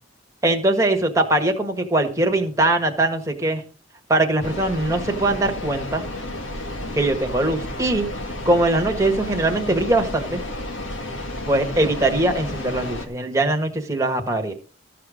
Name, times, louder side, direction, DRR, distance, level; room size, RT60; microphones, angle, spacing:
voice 1, 0.4-3.6 4.1-6.0 6.9-8.1 8.4-10.4 11.5-14.5, right 2 dB, 15° right, 3 dB, 1.5 m, -21 dB
sound 1, 4.4-13.1, left 1 dB, 80° left, 1.8 m, -32 dB
14.0 x 6.8 x 5.0 m, 0.39 s
head